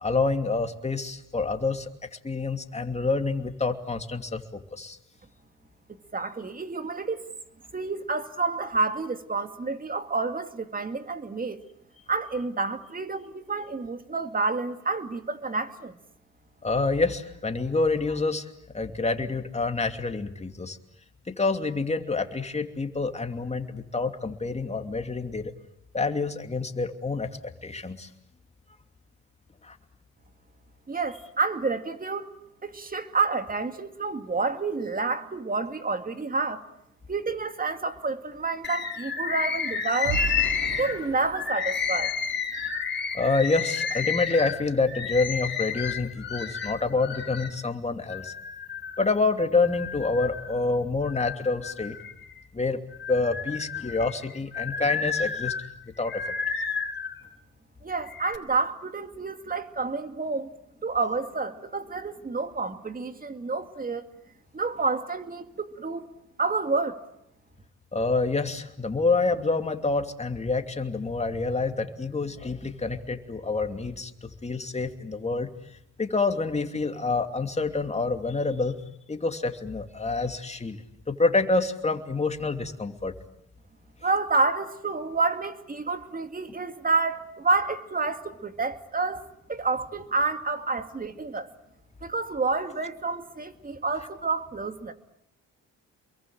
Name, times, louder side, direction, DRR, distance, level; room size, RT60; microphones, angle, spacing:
voice 1, 0.0-5.0 16.6-18.5 18.7-20.8 21.3-25.5 25.9-27.3 27.6-28.1 29.6-29.8 43.1-48.3 49.0-52.0 52.5-52.8 53.1-55.5 55.8-56.2 67.9-75.5 76.0-78.8 79.1-83.1, left 3 dB, 20° left, 2.8 m, -27 dB
voice 2, 6.1-7.2 7.7-11.6 12.1-16.0 30.9-32.3 32.6-36.6 37.1-40.3 40.8-42.1 57.8-60.5 60.8-64.1 64.5-66.1 66.4-67.0 84.0-89.2 89.5-91.5 92.0-94.9, right 3 dB, 30° right, 2.4 m, -29 dB
sound 1, 37.1-37.2 37.5-43.0 43.5-43.7 44.0-44.3, right 5 dB, 85° right, 3.7 m, -39 dB
Bird, 38.6-47.6 48.1-49.1 49.6-50.6 51.1-52.4 52.9-57.2 57.9-58.4, left 6 dB, 40° left, 3.5 m, -31 dB
28.5 x 22.5 x 9.0 m
cardioid pair, 90°, 30 cm